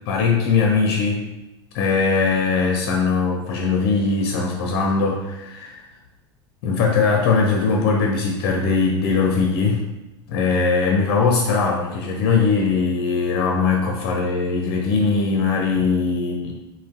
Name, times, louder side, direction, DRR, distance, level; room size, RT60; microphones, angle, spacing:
voice 1, 0.1-1.3 1.7-5.8 6.6-9.8 10.3-16.5, left 4 dB, 50° left, 1 dB, 0.4 m, -20 dB
3.7 x 2.0 x 2.4 m, 0.97 s
figure-of-eight pair, 80°, 14 cm